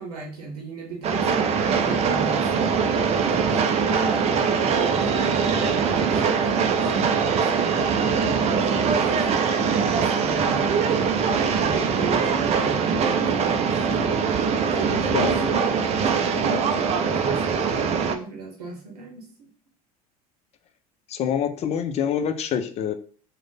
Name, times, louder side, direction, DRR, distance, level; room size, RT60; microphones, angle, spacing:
voice 1, 0.0-8.2 8.5-10.8 11.0-19.5, right 3 dB, 80° right, 0 dB, 0.8 m, -36 dB
Train, 1.0-18.2, right 6 dB, 35° right, 0.5 m, -22 dB
voice 2, 21.1-22.9, left 8 dB, 35° left, 9 dB, 0.5 m, -25 dB
3.1 x 2.1 x 3.9 m, 0.44 s
figure-of-eight pair, 75°, 19 cm